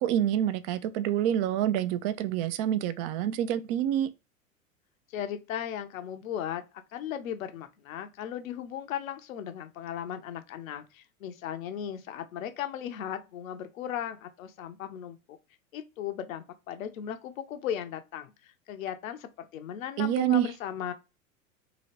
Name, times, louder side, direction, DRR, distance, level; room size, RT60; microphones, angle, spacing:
voice 1, 0.0-4.1 20.0-20.5, right 11 dB, 45° right, 0.5 m, -27 dB
voice 2, 5.1-6.6 6.9-15.4 15.7-20.9, left 10 dB, 70° left, 0.7 m, -37 dB
2.9 x 2.7 x 2.9 m
figure-of-eight pair, 90°, 42 cm